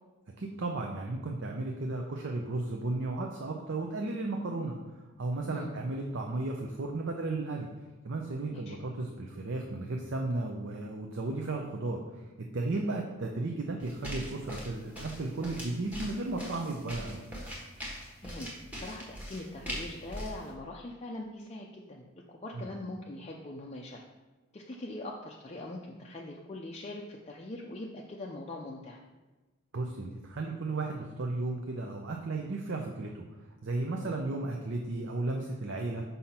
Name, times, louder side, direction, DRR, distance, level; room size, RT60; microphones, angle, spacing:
voice 1, 0.4-7.7 8.0-12.2 12.5-17.2 22.5-22.7 29.7-33.2 33.6-36.0, right 2 dB, 55° right, 1 dB, 0.6 m, -34 dB
sound 1, 13.8-20.5, equal, 5° right, 1.1 m, -41 dB
voice 2, 18.2-22.0 22.3-24.0 24.5-29.0 34.0-34.2, left 2 dB, 30° left, -1 dB, 0.5 m, -42 dB
5.6 x 5.5 x 4.3 m, 1.2 s
head